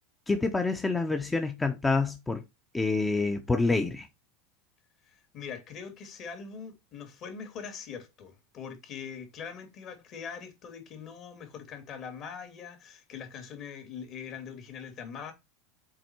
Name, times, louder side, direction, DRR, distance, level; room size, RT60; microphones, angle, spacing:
voice 1, 0.3-2.4 2.7-4.1, left 3 dB, 15° left, 1.0 m, -27 dB
voice 2, 5.1-15.3, left 6 dB, 45° left, 2.8 m, -42 dB
7.6 x 4.3 x 4.6 m
hypercardioid pair, 85°, 0 cm